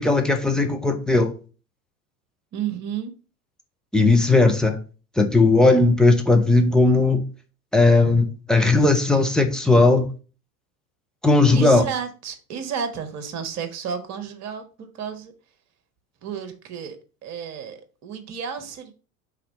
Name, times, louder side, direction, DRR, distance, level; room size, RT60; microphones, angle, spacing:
voice 1, 0.0-1.3 3.9-4.8 5.2-7.2 7.7-10.1 11.2-11.8, left 2 dB, ahead, 0.3 m, -17 dB
voice 2, 2.5-3.1 11.5-15.3 16.2-18.9, right 7 dB, 35° right, 1.3 m, -32 dB
5.7 x 3.7 x 5.2 m
figure-of-eight pair, 80°, 44 cm